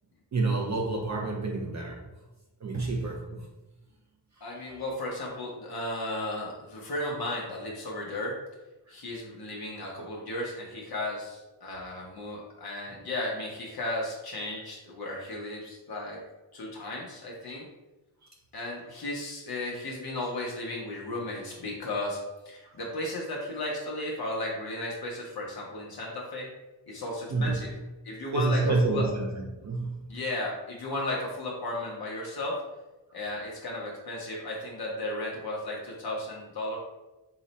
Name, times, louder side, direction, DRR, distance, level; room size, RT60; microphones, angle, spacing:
voice 1, 0.3-2.0 2.6-3.4 22.6-22.7 27.3-27.6 28.3-30.1, right 3 dB, 40° right, 0 dB, 0.4 m, -28 dB
voice 2, 4.4-8.4 8.9-16.2 16.5-17.7 18.5-22.2 22.5-26.5 26.9-27.7 28.0-29.0 30.1-32.6 33.1-36.8, left 1 dB, 55° left, -3 dB, 0.8 m, -35 dB
3.9 x 2.1 x 4.0 m, 1.0 s
wide cardioid pair, 160°, 45 cm